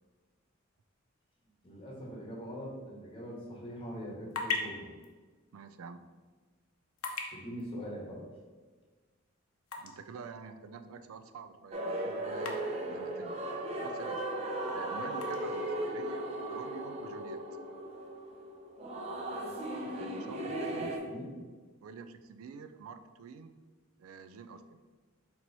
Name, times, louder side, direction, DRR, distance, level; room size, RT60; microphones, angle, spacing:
voice 1, 1.6-4.9 7.3-8.2 21.0-21.3, equal, 25° left, -3 dB, 1.1 m, -42 dB
sound 1, 3.8-17.7, left 4 dB, 85° left, 0.6 m, -45 dB
voice 2, 5.5-6.1 9.8-13.4 13.8-14.2 14.7-16.2 16.5-17.4 19.9-21.0 21.8-23.5 24.0-24.8, right 5 dB, 85° right, 9 dB, 0.4 m, -47 dB
sound 2, 11.7-21.0, right 1 dB, 30° right, 0.6 m, -37 dB
4.6 x 2.9 x 4.0 m, 1.4 s
head